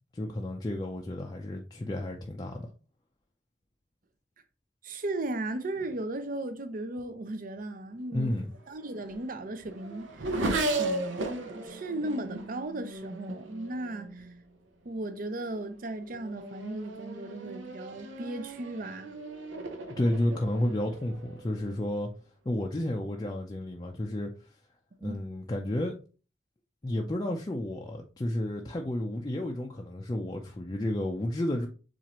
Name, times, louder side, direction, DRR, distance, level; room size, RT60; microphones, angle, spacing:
voice 1, 0.1-2.7 8.1-8.5 20.0-22.1 22.5-24.3 25.0-26.0 26.8-31.7, left 1 dB, 20° left, 0.4 m, -31 dB
voice 2, 4.8-8.4 8.7-10.2 10.7-14.3 14.8-19.1 25.0-25.2, right 2 dB, 50° right, 0.6 m, -36 dB
Race car auto racing / Accelerating revving vroom, 8.5-14.4 15.2-15.6 16.0-21.9, right 2 dB, 90° right, 0.6 m, -36 dB
7.2 x 2.5 x 2.9 m
head